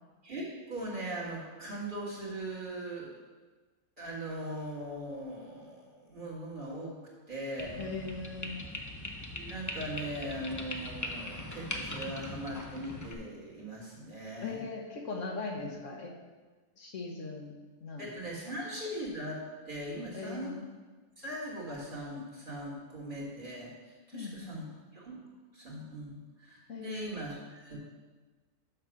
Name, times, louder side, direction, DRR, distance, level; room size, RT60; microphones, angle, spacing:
voice 1, 0.2-3.1 4.0-7.0 7.3-7.8 9.4-14.6 15.6-15.7 18.0-20.5 21.2-24.7 24.9-25.2 25.5-27.8, right 1 dB, 40° right, -5 dB, 2.0 m, -40 dB
sound 1, 7.6-13.1, left 1 dB, 20° left, 0.6 m, -40 dB
voice 2, 7.8-8.7 14.4-16.1 16.8-17.5 17.8-18.1 20.1-20.7 24.1-24.6 26.7-27.2, left 3 dB, 70° left, 2 dB, 1.4 m, -40 dB
6.6 x 5.9 x 6.2 m, 1.3 s
omnidirectional pair, 1.4 m